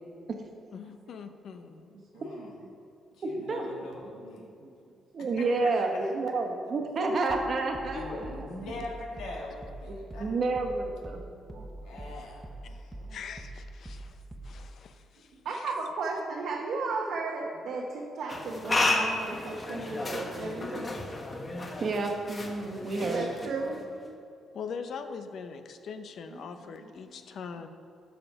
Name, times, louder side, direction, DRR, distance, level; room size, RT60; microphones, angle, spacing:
voice 1, 0.7-1.9 13.1-15.7 24.5-27.7, left 6 dB, 65° left, 8 dB, 0.7 m, -42 dB
voice 2, 2.1-2.5 3.2-4.4 5.4-6.1 7.9-10.3 11.8-12.9 22.8-23.3, left 2 dB, 80° left, -3 dB, 2.1 m, -42 dB
voice 3, 3.2-3.7 5.1-8.1 10.2-11.2 21.8-23.2, right 3 dB, 50° right, 3 dB, 1.3 m, -29 dB
voice 4, 4.4-4.7 11.5-12.1 13.0-13.2 15.2-21.0 23.0-23.8 26.3-26.4, right 3 dB, 70° right, -2 dB, 1.0 m, -35 dB
sound 1, 7.3-14.8, right 1 dB, 15° right, 0.6 m, -44 dB
sound 2, 18.3-23.9, left 2 dB, 30° left, 1.2 m, -33 dB
12.0 x 5.1 x 4.8 m, 2.5 s
cardioid pair, 90°, 0 cm